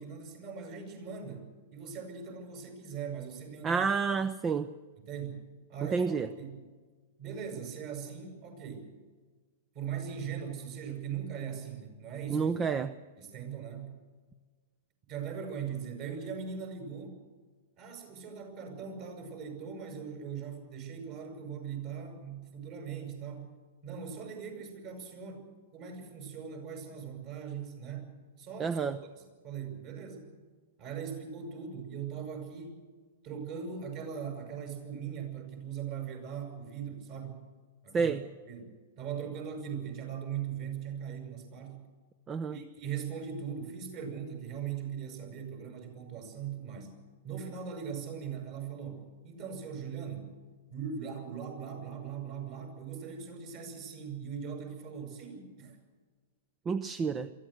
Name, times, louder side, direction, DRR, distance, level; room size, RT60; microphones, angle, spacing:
voice 1, 0.0-3.8 5.1-5.4 5.7-6.6 7.2-8.9 9.7-12.7 13.2-14.0 15.1-17.2 17.8-23.5 23.8-28.8 29.2-30.4 30.8-32.8 33.2-37.4 37.8-38.1 38.4-41.8 42.5-46.9 47.2-50.3 50.7-55.8, right 7 dB, 45° right, 4 dB, 7.6 m, -40 dB
voice 2, 3.6-4.7 5.9-6.3 12.3-12.9 28.6-29.0 37.9-38.2 42.3-42.6 56.7-57.3, right 5 dB, 20° right, 14 dB, 0.7 m, -29 dB
23.0 x 15.5 x 8.1 m, 1.4 s
figure-of-eight pair, 105°, 0 cm